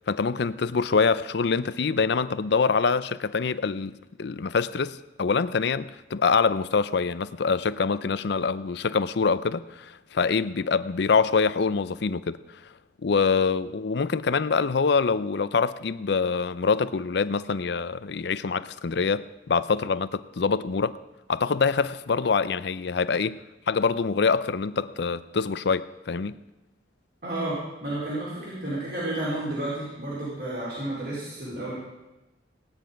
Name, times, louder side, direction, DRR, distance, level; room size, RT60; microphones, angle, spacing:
voice 1, 0.1-12.4 13.0-21.0 21.3-23.4 23.7-26.4, left 5 dB, 65° left, 0.5 m, -25 dB
voice 2, 27.2-31.7, right 1 dB, 60° right, 4.4 m, -31 dB
17.0 x 10.0 x 5.2 m
head